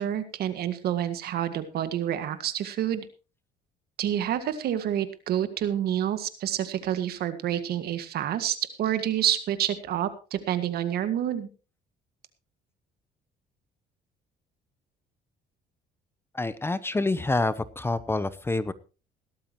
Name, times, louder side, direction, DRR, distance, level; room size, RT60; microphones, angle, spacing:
voice 1, 0.0-3.0 4.0-11.5, right 11 dB, 70° right, 11 dB, 1.8 m, -28 dB
voice 2, 16.3-18.7, left 2 dB, 15° left, 15 dB, 0.8 m, -27 dB
17.5 x 13.0 x 3.0 m, 0.33 s
cardioid pair, 110°, 17 cm